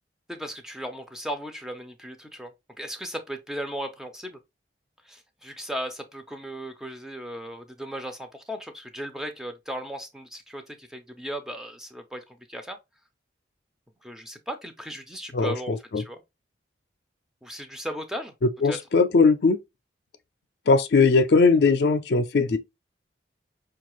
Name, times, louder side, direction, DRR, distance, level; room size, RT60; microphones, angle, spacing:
voice 1, 0.3-2.5 2.8-4.4 5.1-12.8 14.0-16.2 17.4-18.3 18.6-18.8, equal, 5° right, 0.4 m, -36 dB
voice 2, 15.3-16.0 18.6-19.6 20.7-22.6, left 4 dB, 60° left, 0.4 m, -20 dB
5.1 x 2.3 x 3.0 m
head